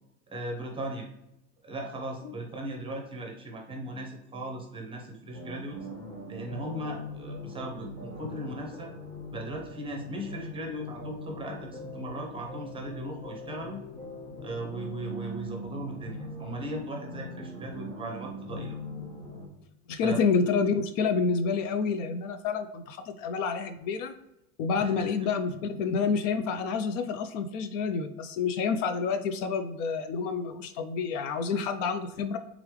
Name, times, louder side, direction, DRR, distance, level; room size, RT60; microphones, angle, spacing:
voice 1, 0.3-1.1 1.6-5.9 6.3-8.9 9.3-13.8 14.4-18.8 20.0-20.2 24.8-25.1, right 1 dB, 10° right, 1 dB, 0.7 m, -38 dB
sound 1, 5.3-19.5, left 1 dB, 25° left, 1.5 m, -41 dB
voice 2, 19.9-24.1 24.6-32.4, left 5 dB, 60° left, 9 dB, 0.5 m, -28 dB
3.6 x 3.3 x 3.1 m, 0.85 s
hypercardioid pair, 120°, 43 cm